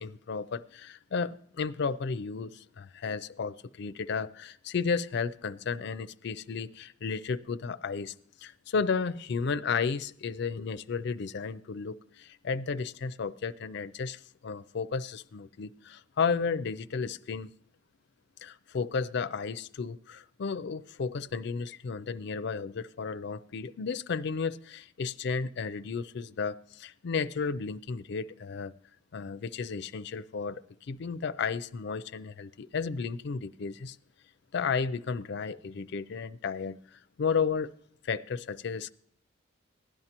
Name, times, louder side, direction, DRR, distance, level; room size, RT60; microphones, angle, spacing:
voice 1, 0.0-8.1 8.4-17.5 18.4-28.7 29.1-30.6 30.9-34.0 34.5-37.7 38.0-38.9, left 5 dB, 60° left, 0.4 m, -33 dB
16.5 x 11.0 x 2.9 m
head